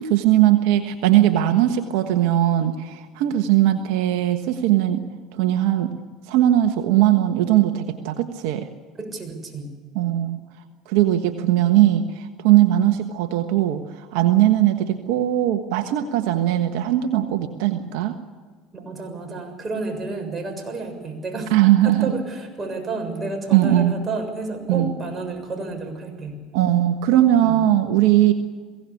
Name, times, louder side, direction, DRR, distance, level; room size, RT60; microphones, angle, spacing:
voice 1, 0.0-5.0 5.3-5.9 6.3-8.7 9.9-10.4 10.9-18.2 21.5-22.1 23.5-23.9 24.7-24.9 26.5-28.3, right 13 dB, 75° right, 7 dB, 1.3 m, -19 dB
voice 2, 8.9-9.7 18.7-21.6 21.8-26.4 27.4-27.6, right 3 dB, 30° right, 3 dB, 6.9 m, -31 dB
22.5 x 17.0 x 8.5 m, 1.5 s
supercardioid pair, 85°, 0 cm